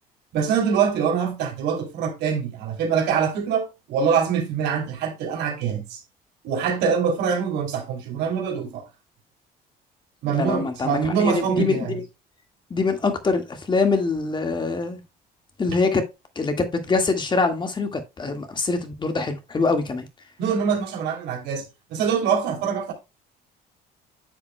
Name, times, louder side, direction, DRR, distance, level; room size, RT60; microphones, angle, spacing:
voice 1, 0.3-6.0 6.4-8.8 10.2-12.0 20.4-21.6 21.9-22.9, right 6 dB, 85° right, 3.0 m, -24 dB
voice 2, 10.3-12.0 12.7-15.0 15.6-16.1 16.4-20.1, left 4 dB, 25° left, 1.8 m, -24 dB
9.9 x 7.2 x 2.2 m
cardioid pair, 110°, 17 cm